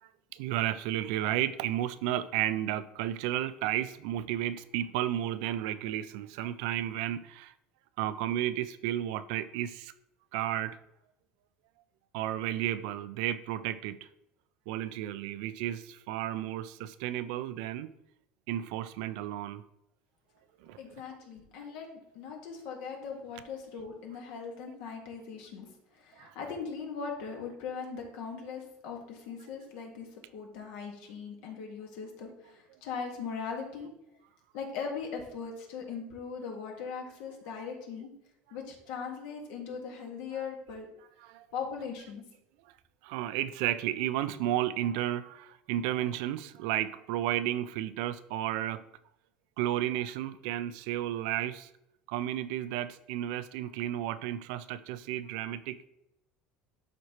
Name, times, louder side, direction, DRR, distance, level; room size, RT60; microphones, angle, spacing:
voice 1, 0.0-7.5 8.0-9.9 10.3-10.8 12.1-14.1 14.7-17.9 18.5-19.6 20.6-20.8 26.2-26.3 41.2-41.5 43.0-48.8 49.6-51.7 52.1-55.9, right 12 dB, 80° right, 14 dB, 0.4 m, -33 dB
voice 2, 20.8-21.9 22.1-25.7 26.0-33.9 34.5-38.1 38.5-40.9 41.5-42.2, left 5 dB, 75° left, 1 dB, 2.0 m, -39 dB
11.5 x 4.2 x 3.2 m, 0.83 s
cardioid pair, 145°, 4 cm